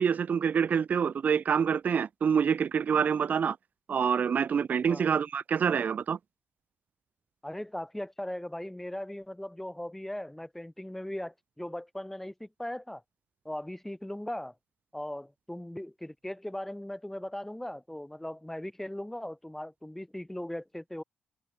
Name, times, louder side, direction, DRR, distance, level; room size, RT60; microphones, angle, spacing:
voice 1, 0.0-3.6 3.9-6.2, right 7 dB, 45° right, 0.3 m, -26 dB
voice 2, 7.4-13.0 13.5-14.5 14.9-21.0, left 1 dB, 5° left, 1.9 m, -38 dB
cardioid pair, 85°, 4 cm